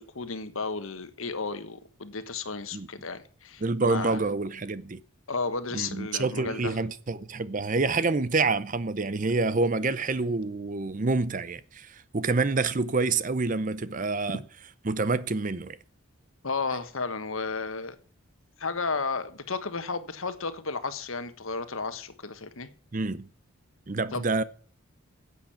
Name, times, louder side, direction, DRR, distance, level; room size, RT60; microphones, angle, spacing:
voice 1, 0.0-4.2 5.3-6.8 16.4-17.9 18.6-22.7 24.1-24.3, left 4 dB, 75° left, 1.3 m, -33 dB
voice 2, 3.6-5.0 5.7-14.4 14.9-15.8 22.9-23.3 23.9-24.4, right 3 dB, 40° right, 0.6 m, -27 dB
10.0 x 8.3 x 8.6 m
head